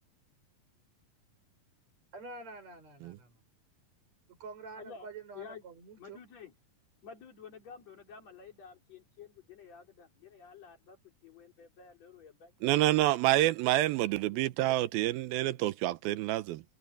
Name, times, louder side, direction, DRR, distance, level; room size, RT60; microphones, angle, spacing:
voice 1, 2.1-3.4 4.4-6.2, right 3 dB, 50° right, 7.1 m, -47 dB
voice 2, 4.8-5.1 5.3-5.6 6.0-6.5 7.0-12.5 14.0-14.4, left 6 dB, 50° left, 4.5 m, -51 dB
voice 3, 12.6-16.6, right 16 dB, 90° right, 2.7 m, -28 dB
omnidirectional pair, 4.2 m